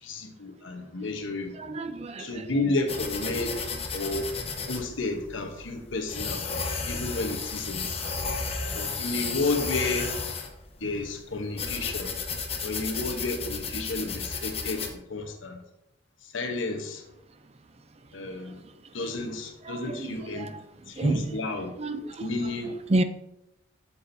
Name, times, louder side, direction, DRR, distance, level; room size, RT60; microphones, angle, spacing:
voice 1, 0.0-1.7 2.2-4.3 4.7-6.5 6.9-8.0 8.7-10.1 10.8-12.2 12.6-15.6 16.2-17.1 18.1-18.6 18.9-20.5 20.9-21.7 22.2-22.7, left 2 dB, 75° left, 5 dB, 1.0 m, -32 dB
voice 2, 1.6-2.3 19.7-20.5 21.0-21.3 21.8-22.3 22.9-23.0, right 2 dB, 30° right, 9 dB, 0.5 m, -29 dB
sound 1, 2.9-14.9, left 4 dB, 30° left, 0.9 m, -33 dB
8.5 x 7.1 x 2.7 m, 0.89 s
head